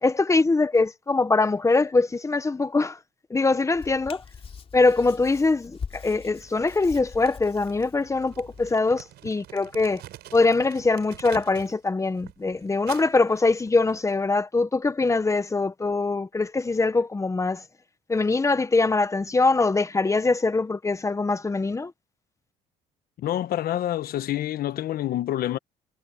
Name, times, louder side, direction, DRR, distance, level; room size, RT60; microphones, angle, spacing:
voice 1, 0.0-3.0 3.3-4.2 4.7-10.0 10.3-17.6 18.1-21.9, left 3 dB, 20° left, 1.2 m, -23 dB
Hands, 3.7-8.8, left 6 dB, 35° left, 3.4 m, -42 dB
Crumpling crinkling, 6.4-11.8 12.1-14.1, right 14 dB, 75° right, 5.4 m, -47 dB
voice 2, 23.2-25.6, left 12 dB, 60° left, 1.2 m, -27 dB
cardioid pair, 110°, 17 cm